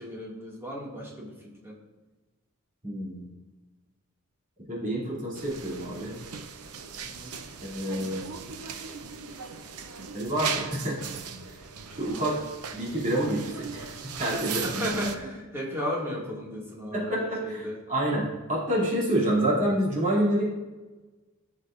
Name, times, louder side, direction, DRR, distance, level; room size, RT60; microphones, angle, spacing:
voice 1, 0.0-1.8 7.0-7.4 14.6-17.8, equal, 10° right, -4 dB, 2.1 m, -34 dB
voice 2, 2.8-3.3 4.7-6.2 7.6-8.2 10.1-11.0 11.9-12.4 12.7-13.9 14.2-14.6 16.9-17.6 17.9-20.4, right 1 dB, 35° right, -6 dB, 2.8 m, -27 dB
sound 1, 5.3-15.2, right 6 dB, 90° right, 0.7 m, -38 dB
15.5 x 6.5 x 2.6 m, 1.2 s
head